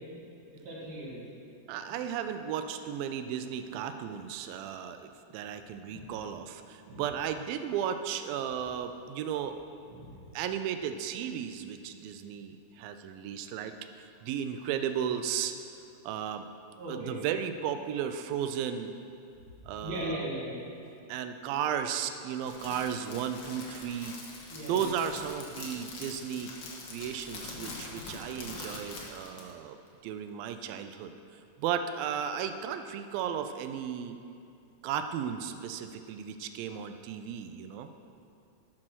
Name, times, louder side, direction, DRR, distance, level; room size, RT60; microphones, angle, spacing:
voice 1, 0.5-1.2 1.9-2.0 5.9-6.0 6.9-7.0 9.9-10.2 16.8-17.2 19.8-20.6 21.5-21.6 24.5-25.0, right 1 dB, 50° right, -8 dB, 3.3 m, -38 dB
voice 2, 1.7-9.6 10.3-15.5 16.0-16.5 16.9-19.0 19.7-20.3 21.1-24.2 24.7-26.5 26.9-31.1 31.6-34.2 34.8-37.9, right 8 dB, 90° right, 8 dB, 2.4 m, -35 dB
Crackle, 22.4-29.5, left 3 dB, 70° left, 1.1 m, -44 dB
12.0 x 6.0 x 6.2 m, 2.5 s
omnidirectional pair, 4.1 m